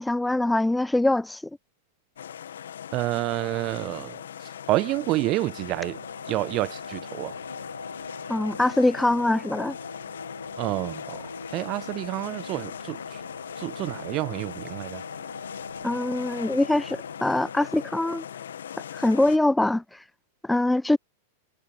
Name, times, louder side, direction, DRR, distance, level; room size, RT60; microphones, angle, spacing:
voice 1, 0.0-1.4 8.3-9.8 15.8-18.2 18.9-20.0 20.4-21.0, left 2 dB, 5° left, 0.4 m, -23 dB
sound 1, 2.2-19.4, left 9 dB, 65° left, 1.8 m, -40 dB
voice 2, 2.9-4.2 4.7-6.0 6.3-7.3 10.6-13.2 13.6-15.0, right 19 dB, 35° right, 0.9 m, -29 dB
sound 2, 5.5-19.1, left 2 dB, 85° left, 2.2 m, -43 dB
figure-of-eight pair, 95°, 0 cm